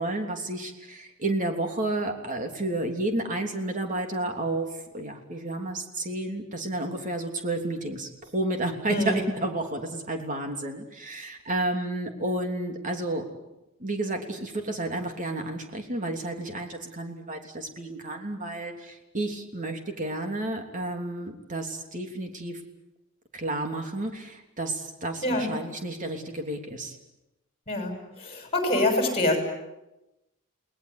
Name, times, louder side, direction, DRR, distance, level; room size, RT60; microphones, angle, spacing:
voice 1, 0.0-13.3 13.8-22.6 23.3-27.0, right 2 dB, 40° right, 4 dB, 3.2 m, -31 dB
voice 2, 8.9-9.2 25.2-25.5 27.7-29.4, left 1 dB, 30° left, 4 dB, 6.4 m, -25 dB
29.5 x 19.5 x 8.4 m, 0.94 s
head